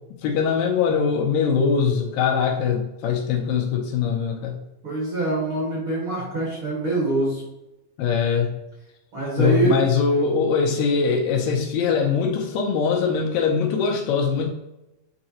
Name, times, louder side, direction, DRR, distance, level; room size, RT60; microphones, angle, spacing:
voice 1, 0.2-4.6 8.0-8.6 9.4-14.5, left 6 dB, 80° left, 1 dB, 2.4 m, -22 dB
voice 2, 4.8-7.4 9.1-9.8, right 2 dB, 45° right, -5 dB, 1.8 m, -24 dB
8.8 x 3.8 x 2.9 m, 0.94 s
omnidirectional pair, 4.2 m